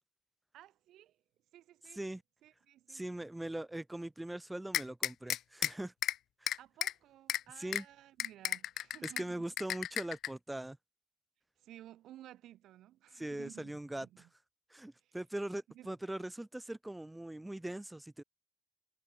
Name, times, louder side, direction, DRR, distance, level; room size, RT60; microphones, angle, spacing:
voice 1, 0.5-1.2 1.5-2.0 2.4-3.0 6.5-9.5 11.6-14.3 15.0-15.2 15.7-15.9, right 13 dB, 85° right, 5.6 m, -56 dB
voice 2, 2.9-5.9 6.4-6.5 7.6-7.9 9.0-10.8 13.1-14.1 14.7-18.2, right 1 dB, 10° right, 3.6 m, -41 dB
sound 1, 4.7-5.7 6.0-6.1 6.5-6.9 7.3-7.4 7.7-7.8 8.2-9.2 9.6-10.3, left 12 dB, 75° left, 0.7 m, -33 dB
cardioid pair, 100°, 0 cm